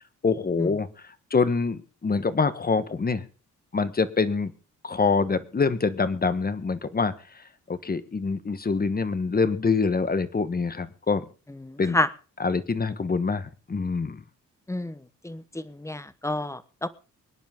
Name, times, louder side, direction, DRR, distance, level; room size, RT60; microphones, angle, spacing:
voice 1, 0.2-0.9 1.3-3.2 3.7-4.5 4.8-7.1 7.7-11.2 11.8-12.0 12.4-14.2, left 4 dB, 30° left, 12 dB, 1.3 m, -25 dB
voice 2, 11.6-12.1 14.7-15.0 15.2-16.9, left 1 dB, 10° left, 13 dB, 1.0 m, -29 dB
24.0 x 10.5 x 3.7 m, 0.36 s
wide cardioid pair, 125°, 31 cm